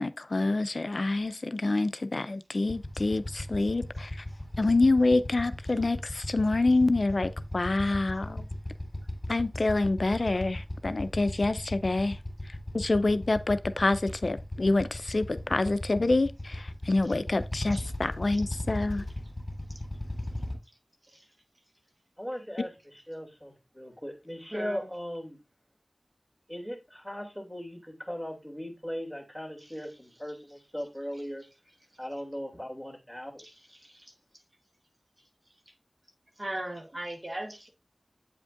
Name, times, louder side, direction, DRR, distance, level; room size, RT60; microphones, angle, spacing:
voice 1, 0.0-4.1 4.6-8.5 9.3-12.2 12.7-19.0, left 2 dB, 65° left, 0.4 m, -27 dB
Motorcycle / Idling, 2.6-20.5, left 1 dB, 35° left, 2.3 m, -37 dB
voice 2, 22.2-25.4 26.5-31.4 32.0-33.4, equal, 15° right, 2.5 m, -38 dB
voice 3, 24.5-24.9 33.7-34.1 36.4-37.7, right 1 dB, 45° right, 1.1 m, -38 dB
8.3 x 5.1 x 2.4 m
wide cardioid pair, 45°, 0 cm